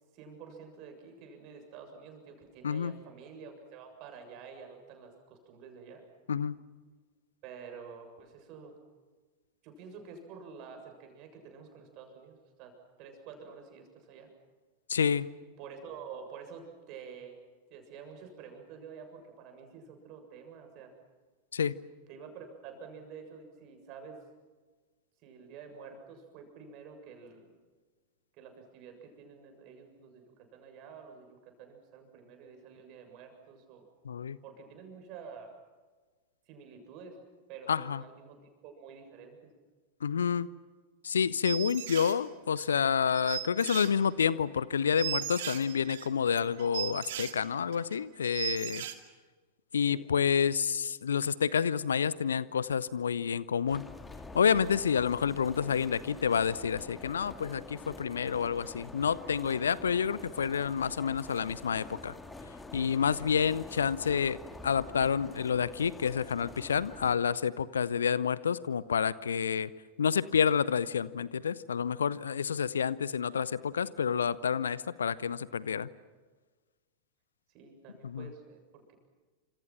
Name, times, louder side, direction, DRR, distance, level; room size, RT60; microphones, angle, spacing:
voice 1, 0.1-6.1 7.4-8.8 9.6-12.7 13.0-14.3 15.6-17.4 17.7-20.9 22.1-24.2 25.2-27.5 28.4-30.2 30.5-31.3 31.6-33.9 34.4-35.5 36.5-37.2 37.5-39.4 49.8-50.1 77.5-78.9, right 6 dB, 40° right, 5 dB, 7.3 m, -49 dB
voice 2, 14.9-15.3 21.5-21.7 34.0-34.4 37.7-38.0 40.0-40.5 41.0-48.8 49.7-53.9 54.3-62.1 62.7-64.4 64.6-69.7 70.0-75.9 78.0-78.3, left 7 dB, 70° left, 19 dB, 0.9 m, -29 dB
sound 1, 41.4-42.2 42.6-42.7 43.1-44.3 44.6-44.7 45.0-47.3 47.7-48.0 48.2-48.9, right 12 dB, 55° right, 2.4 m, -37 dB
sound 2, 53.7-67.2, left 2 dB, 10° left, 2.2 m, -47 dB
29.5 x 27.0 x 6.0 m, 1.4 s
figure-of-eight pair, 90°, 0 cm